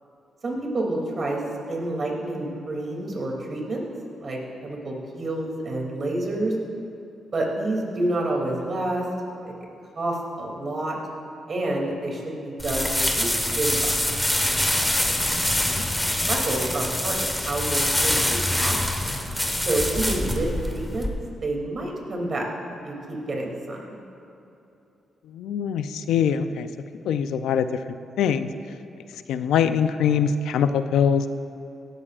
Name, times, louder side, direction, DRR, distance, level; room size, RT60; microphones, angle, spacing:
voice 1, 0.4-3.8 4.2-6.6 7.3-9.1 9.4-9.5 9.9-11.0 11.5-14.2 16.0-18.8 19.6-21.1 21.4-22.5 22.8-24.0, right 2 dB, 45° right, -1 dB, 2.8 m, -28 dB
sound 1, 12.6-21.1, left 1 dB, 10° left, 1.4 m, -25 dB
voice 2, 25.3-26.7 27.1-27.7 28.2-28.5 29.3-31.3, left 7 dB, 90° left, 10 dB, 0.5 m, -23 dB
17.5 x 13.0 x 2.5 m, 2.8 s
cardioid pair, 80°, 0 cm